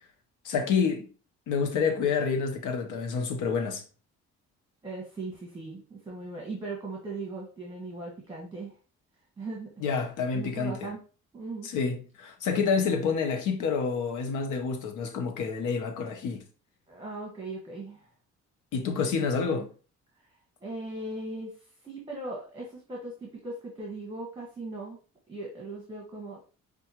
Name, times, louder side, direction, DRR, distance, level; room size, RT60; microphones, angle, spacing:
voice 1, 0.4-1.1 1.5-3.8 9.8-10.9 11.6-16.4 18.7-19.7, left 5 dB, 85° left, 0.9 m, -28 dB
voice 2, 4.8-8.7 9.4-9.7 10.3-11.0 11.3-11.7 16.9-18.1 19.1-19.7 20.6-25.0 25.3-26.5, right 2 dB, 15° right, 1.3 m, -39 dB
5.6 x 2.5 x 2.8 m
cardioid pair, 90°, 30 cm